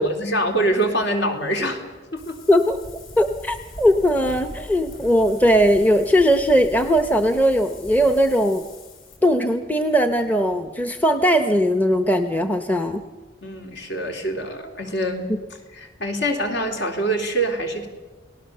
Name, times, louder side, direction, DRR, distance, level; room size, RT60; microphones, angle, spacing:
voice 1, 0.0-1.8 2.1-2.4 13.4-15.3 15.7-17.9, right 1 dB, 65° left, 3 dB, 3.3 m, -24 dB
Wind, 2.2-9.2, left 1 dB, 45° left, 4.4 m, -41 dB
voice 2, 3.2-8.6 9.2-13.0, equal, 10° left, 8 dB, 0.8 m, -19 dB
29.5 x 18.5 x 6.7 m, 1.2 s
head